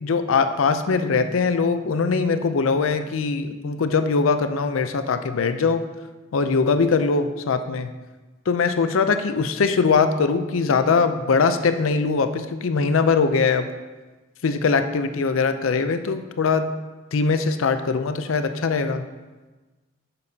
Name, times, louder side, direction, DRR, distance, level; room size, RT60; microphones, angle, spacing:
voice 1, 0.0-5.9 6.3-7.9 8.5-13.7 14.4-16.7 17.1-19.0, left 4 dB, 90° left, 9 dB, 0.5 m, -21 dB
9.4 x 7.0 x 2.8 m, 1.2 s
head